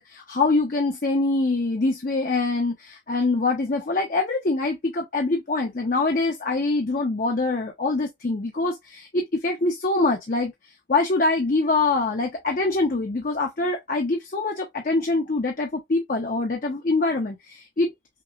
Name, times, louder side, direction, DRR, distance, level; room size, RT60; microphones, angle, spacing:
voice 1, 0.0-10.5 10.9-17.9, left 3 dB, 50° left, 0.6 m, -24 dB
5.8 x 2.1 x 2.4 m
head